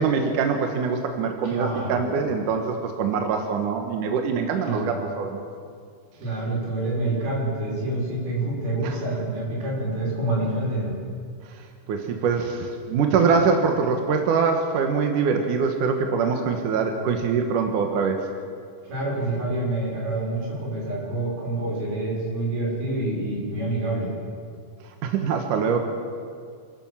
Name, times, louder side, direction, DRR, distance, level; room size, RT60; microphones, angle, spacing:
voice 1, 0.0-5.5 8.8-8.9 11.9-18.2 25.0-25.8, right 5 dB, 65° right, 4 dB, 2.6 m, -23 dB
voice 2, 1.4-2.0 4.6-4.9 6.2-11.0 18.8-24.1, right 2 dB, 80° right, -4 dB, 7.6 m, -27 dB
28.0 x 12.5 x 7.4 m, 2.2 s
omnidirectional pair, 4.3 m